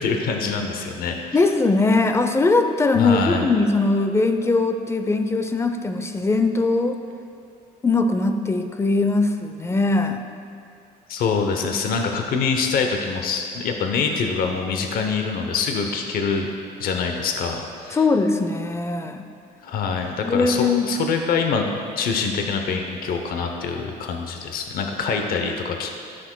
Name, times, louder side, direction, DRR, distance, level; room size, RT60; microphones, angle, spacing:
voice 1, 0.0-1.4 3.0-3.5 11.1-16.5 16.8-18.0 19.6-21.7 22.0-25.9, left 5 dB, 60° left, 4 dB, 0.7 m, -25 dB
voice 2, 1.3-7.0 7.8-10.2 17.9-19.2 20.2-20.9, left 3 dB, 15° left, 7 dB, 0.5 m, -20 dB
14.5 x 6.1 x 2.2 m, 2.3 s
cardioid pair, 110°, 17 cm